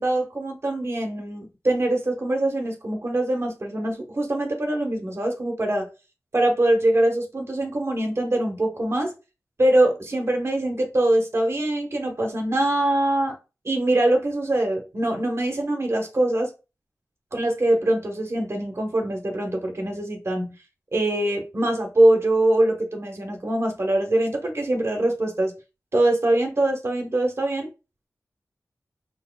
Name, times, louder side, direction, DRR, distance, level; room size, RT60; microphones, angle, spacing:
voice 1, 0.0-5.9 6.3-9.1 9.6-13.4 13.6-16.5 17.3-20.5 20.9-25.5 25.9-27.7, right 1 dB, 50° right, 1.2 m, -23 dB
5.7 x 4.0 x 2.4 m
cardioid pair, 45°, 6 cm